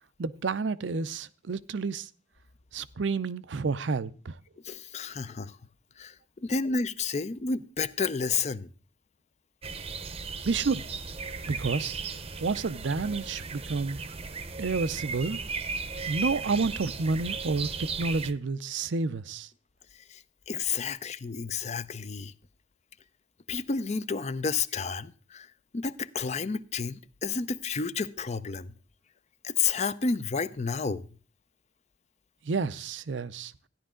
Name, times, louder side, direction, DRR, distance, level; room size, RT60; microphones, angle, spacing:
voice 1, 0.2-2.1 2.7-4.4 10.4-10.8 11.5-12.0 12.4-14.0 14.6-15.4 16.1-19.5 32.4-33.5, right 4 dB, 80° right, 0.5 m, -30 dB
voice 2, 4.6-5.6 6.0-6.1 6.4-8.7 20.1-22.3 23.5-25.5 25.7-28.7 29.4-31.1, left 5 dB, 40° left, 0.5 m, -31 dB
sound 1, 9.6-18.3, right 4 dB, 35° right, 0.7 m, -36 dB
13.5 x 10.5 x 3.8 m
head